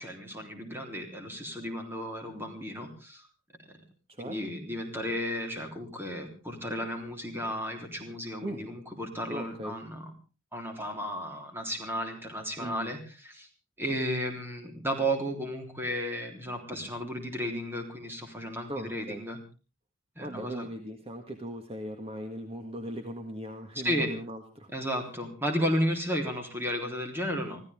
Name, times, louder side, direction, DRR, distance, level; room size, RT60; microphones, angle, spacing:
voice 1, 0.0-3.3 4.2-10.1 10.5-13.5 13.8-19.4 20.2-20.7 23.8-24.1 24.7-27.6, equal, 10° right, 3 dB, 3.6 m, -33 dB
voice 2, 9.3-9.8 12.6-12.9 18.7-19.2 20.2-24.7, equal, 30° right, 5 dB, 1.6 m, -38 dB
25.5 x 15.0 x 3.6 m, 0.34 s
head